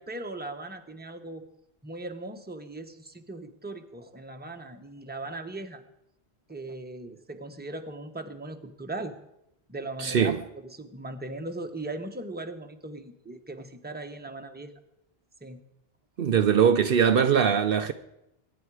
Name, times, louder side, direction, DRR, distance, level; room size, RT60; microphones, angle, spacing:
voice 1, 0.0-1.4 1.8-5.8 6.5-9.1 9.7-14.7 15.4-15.6, right 2 dB, 10° right, 1.0 m, -38 dB
voice 2, 10.0-10.4 16.2-17.9, right 7 dB, 65° right, 0.8 m, -21 dB
22.5 x 9.7 x 4.8 m
omnidirectional pair, 1.1 m